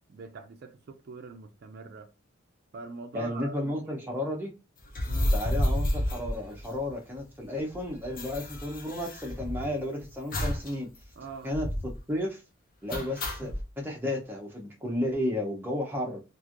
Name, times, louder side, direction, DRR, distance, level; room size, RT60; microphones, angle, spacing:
voice 1, 0.1-2.1 2.7-4.2 5.0-5.3 11.2-11.5, right 4 dB, 50° right, 0.3 m, -44 dB
voice 2, 3.1-4.5 5.3-10.9 11.4-12.4 12.8-13.5 13.8-16.2, left 1 dB, 10° right, 0.6 m, -33 dB
sound 1, 4.9-7.1 7.4-7.5 7.7-9.8 10.3-10.7 11.0-11.1 11.5-12.0 12.9-13.6, left 1 dB, 40° left, 0.5 m, -30 dB
3.1 x 2.4 x 2.4 m
head